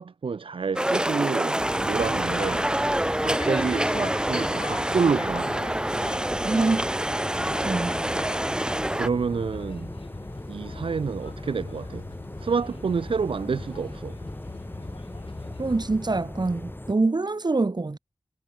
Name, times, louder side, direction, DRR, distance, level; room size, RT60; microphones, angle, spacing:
voice 1, 0.0-2.7 3.2-5.8 9.0-9.9 10.5-12.1 12.4-14.2, right 5 dB, 70° right, 0.4 m, -28 dB
sound 1, 0.8-9.1, right 1 dB, 10° right, 0.5 m, -26 dB
sound 2, 1.6-16.9, left 1 dB, 20° left, 5.2 m, -39 dB
sound 3, 2.2-15.9, left 4 dB, 75° left, 1.0 m, -43 dB
voice 2, 6.4-6.9 7.6-8.0 15.6-18.0, right 3 dB, 50° right, 1.2 m, -25 dB
wide cardioid pair, 45°, 9 cm